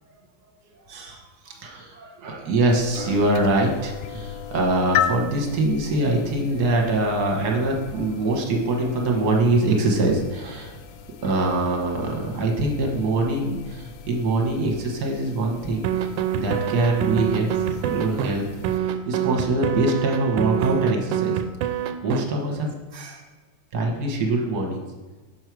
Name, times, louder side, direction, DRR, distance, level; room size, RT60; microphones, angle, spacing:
voice 1, 0.9-10.7 11.2-16.1 16.3-21.3 22.0-23.2 23.7-24.8, right 2 dB, 60° right, 1 dB, 1.7 m, -24 dB
sound 1, 2.7-18.8, left 9 dB, 80° left, 0.8 m, -36 dB
sound 2, 15.8-18.3 18.6-22.2, right 10 dB, 90° right, 1.3 m, -25 dB
6.5 x 6.1 x 4.6 m, 1.3 s
omnidirectional pair, 2.1 m